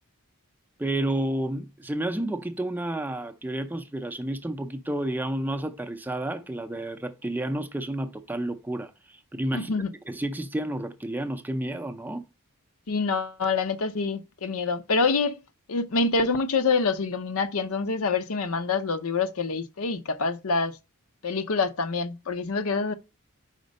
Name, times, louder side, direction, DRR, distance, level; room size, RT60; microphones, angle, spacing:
voice 1, 0.8-9.7 10.1-12.2, right 1 dB, 10° right, 0.5 m, -31 dB
voice 2, 9.5-9.9 12.9-15.4 15.7-20.8 21.2-22.9, left 4 dB, 70° left, 0.6 m, -26 dB
5.1 x 4.3 x 5.2 m
head